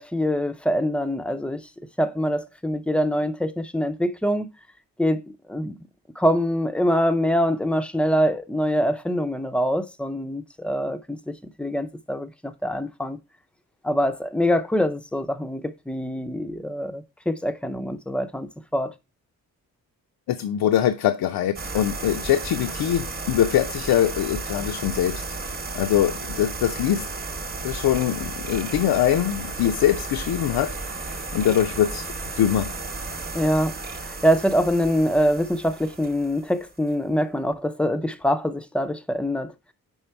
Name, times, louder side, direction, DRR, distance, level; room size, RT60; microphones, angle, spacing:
voice 1, 0.0-1.6 2.0-4.5 5.0-5.2 5.5-5.8 6.2-11.3 11.6-13.2 13.8-18.9 33.3-33.8 34.0-39.5, equal, 5° left, 0.4 m, -24 dB
voice 2, 20.3-25.4 25.7-27.1 27.6-32.1 32.4-32.8, left 11 dB, 85° left, 0.6 m, -23 dB
sound 1, 21.5-36.9, right 3 dB, 25° right, 0.8 m, -34 dB
5.5 x 4.3 x 4.4 m
wide cardioid pair, 140°, 36 cm